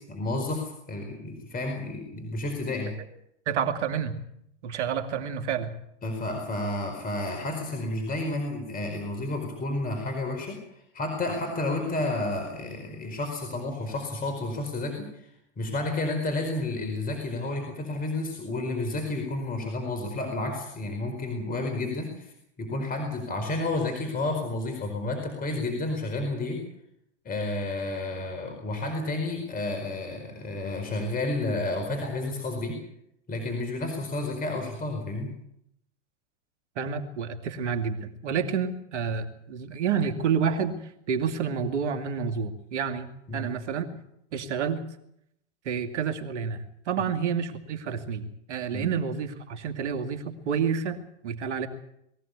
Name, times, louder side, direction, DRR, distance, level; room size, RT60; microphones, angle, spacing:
voice 1, 0.1-2.9 6.0-15.3 15.6-22.3 22.6-26.6 27.2-32.8 33.3-35.3 43.3-43.5 48.7-48.8, left 2 dB, 25° left, 4 dB, 4.7 m, -31 dB
voice 2, 3.5-4.2 4.6-5.7 36.8-44.0 44.3-44.8 45.6-51.7, right 6 dB, 75° right, 7 dB, 2.7 m, -29 dB
22.0 x 16.0 x 8.4 m, 0.77 s
hypercardioid pair, 110°, 35 cm